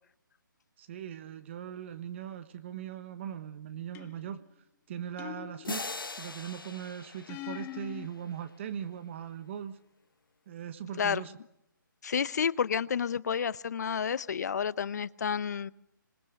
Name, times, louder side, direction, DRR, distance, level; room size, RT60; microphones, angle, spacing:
voice 1, 0.8-4.4 4.9-5.9 6.2-9.8 10.5-11.3, right 9 dB, 35° right, 11 dB, 1.2 m, -40 dB
sound 1, 3.9-4.4 5.2-6.1 7.3-8.1, left 14 dB, 15° left, 0.8 m, -42 dB
sound 2, 5.6-8.5, left 3 dB, 90° left, 1.1 m, -41 dB
voice 2, 12.0-15.7, left 7 dB, 55° left, 19 dB, 0.8 m, -30 dB
26.5 x 20.5 x 6.4 m, 0.81 s
figure-of-eight pair, 150°, 11 cm